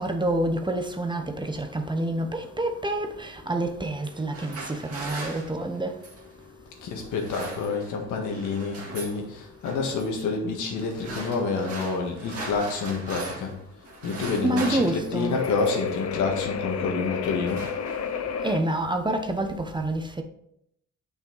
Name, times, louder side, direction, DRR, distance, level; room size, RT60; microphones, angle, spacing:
voice 1, 0.0-6.0 14.4-15.4 18.4-20.2, right 1 dB, 15° right, 0.9 m, -28 dB
sound 1, 0.7-18.6, left 6 dB, 55° left, 0.9 m, -36 dB
sound 2, 4.1-6.3 7.0-8.0 8.3-9.2 9.6-10.0 10.7-13.6 13.8-15.9 16.7-16.9 17.2-18.3, right 3 dB, 50° right, 2.1 m, -39 dB
voice 2, 6.8-13.5 14.0-17.6, left 4 dB, 80° left, 1.7 m, -28 dB
6.9 x 5.7 x 3.9 m
cardioid pair, 90°, 30 cm